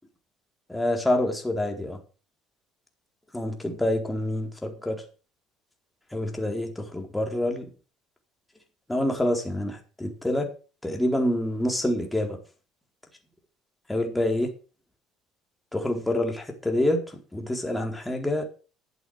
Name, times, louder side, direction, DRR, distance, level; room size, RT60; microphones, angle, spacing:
voice 1, 0.7-2.0 3.3-5.0 6.1-7.7 8.9-10.5 10.8-12.4 13.9-14.5 15.7-17.0 17.3-18.5, left 1 dB, 10° left, 3 dB, 4.2 m, -27 dB
12.0 x 8.0 x 6.5 m, 0.36 s
hypercardioid pair, 70°, 0 cm